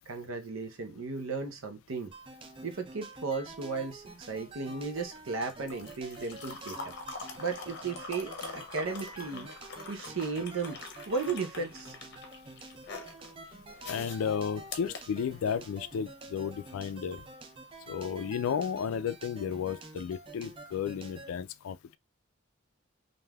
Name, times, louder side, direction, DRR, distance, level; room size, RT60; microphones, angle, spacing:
voice 1, 0.1-2.1 2.6-6.9 7.4-9.5 9.9-11.9, right 4 dB, 85° right, 0.7 m, -35 dB
sound 1, 2.1-21.3, right 2 dB, 25° right, 0.4 m, -48 dB
sound 2, 3.5-15.8 17.1-17.2, left 3 dB, 55° left, 0.7 m, -45 dB
voice 2, 13.9-17.2 17.9-21.8, left 7 dB, 85° left, 0.3 m, -33 dB
3.3 x 2.6 x 2.2 m
head